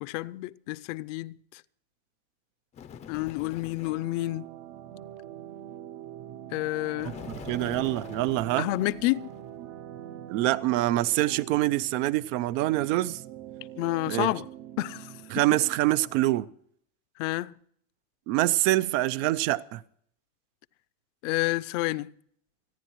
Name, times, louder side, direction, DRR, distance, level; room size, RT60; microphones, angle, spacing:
voice 1, 0.0-1.6 3.1-4.5 6.5-7.1 8.6-9.3 13.8-14.5 14.8-15.1 17.2-17.5 21.2-22.1, left 19 dB, 75° left, 0.6 m, -29 dB
Bird, 2.7-4.1 7.0-9.5, left 7 dB, 20° left, 0.4 m, -44 dB
sound 1, 3.8-16.2, right 11 dB, 35° right, 0.4 m, -44 dB
voice 2, 7.3-8.7 10.3-13.2 14.1-14.3 15.3-16.5 18.3-19.8, right 16 dB, 80° right, 0.7 m, -25 dB
29.0 x 10.5 x 3.0 m
cardioid pair, 180°, 37 cm